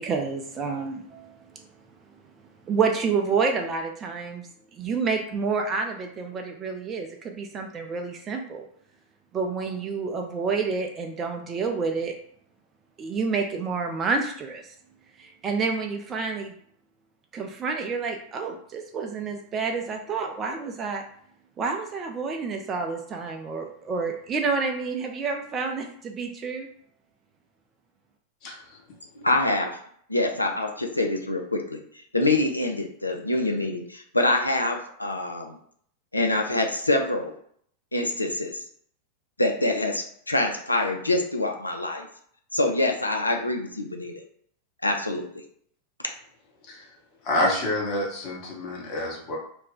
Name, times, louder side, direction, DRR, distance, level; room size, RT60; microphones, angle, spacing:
voice 1, 0.0-1.7 2.7-8.7 9.3-12.1 13.0-14.7 15.2-16.5 17.3-21.0 21.6-26.7, right 4 dB, 25° right, 3 dB, 0.4 m, -29 dB
voice 2, 28.4-28.8 46.7-46.8 47.2-49.4, left 1 dB, 40° left, -1 dB, 0.9 m, -28 dB
voice 3, 29.2-29.7 30.1-31.8 32.1-35.6 36.1-37.3 37.9-38.6 39.4-42.1 42.5-44.2 44.8-45.2, left 2 dB, 85° left, 3 dB, 0.4 m, -25 dB
2.4 x 2.1 x 3.7 m, 0.63 s
figure-of-eight pair, 90°, 0 cm